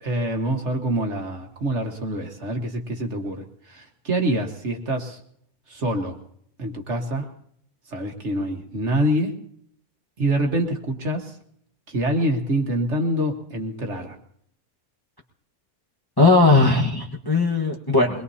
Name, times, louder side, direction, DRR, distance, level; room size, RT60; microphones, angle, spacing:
voice 1, 0.0-5.2 5.7-6.2 6.6-7.3 7.9-9.3 10.2-11.3 11.9-14.2, right 1 dB, 50° right, 3 dB, 1.8 m, -25 dB
voice 2, 16.2-18.2, left 3 dB, 15° left, 0 dB, 1.2 m, -18 dB
23.5 x 21.5 x 2.8 m, 0.67 s
omnidirectional pair, 1.6 m